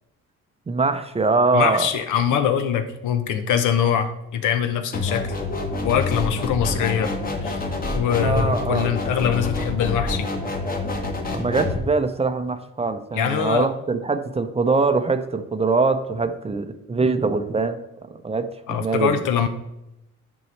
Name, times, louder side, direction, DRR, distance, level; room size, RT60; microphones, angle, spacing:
voice 1, 0.7-1.9 8.2-8.9 11.3-17.8 18.1-19.2, right 3 dB, 20° right, 9 dB, 0.5 m, -23 dB
voice 2, 1.5-5.3 5.8-7.1 7.4-7.6 7.9-10.3 13.1-13.7 18.7-19.5, left 8 dB, 80° left, 8 dB, 0.8 m, -23 dB
sound 1, 4.9-11.8, left 2 dB, 30° left, 1.2 m, -27 dB
9.3 x 5.4 x 3.2 m, 0.89 s
cardioid pair, 90°, 30 cm